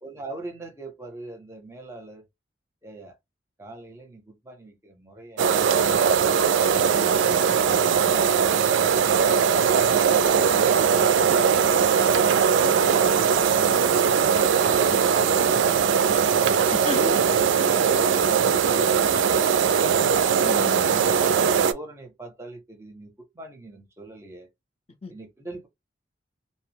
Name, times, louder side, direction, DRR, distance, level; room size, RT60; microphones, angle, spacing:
voice 1, 0.0-2.2 2.8-3.2 3.6-5.9 17.5-20.2 21.5-24.5 25.1-25.7, right 2 dB, 15° right, 0.6 m, -42 dB
sound 1, 5.4-21.7, right 7 dB, 75° right, 0.3 m, -20 dB
voice 2, 6.6-7.1 16.7-17.2 20.4-21.2 25.0-25.1, left 3 dB, 35° left, 0.5 m, -34 dB
2.7 x 2.0 x 3.2 m
head